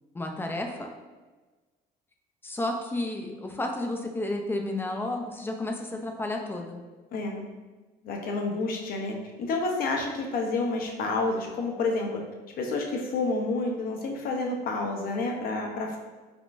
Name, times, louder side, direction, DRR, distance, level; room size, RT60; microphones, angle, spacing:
voice 1, 0.1-0.9 2.4-6.8, left 1 dB, 15° left, 3 dB, 0.3 m, -32 dB
voice 2, 7.1-7.5 8.0-12.2 12.6-16.0, left 3 dB, 60° left, 1 dB, 0.6 m, -29 dB
3.6 x 2.4 x 2.4 m, 1.3 s
cardioid pair, 110°, 17 cm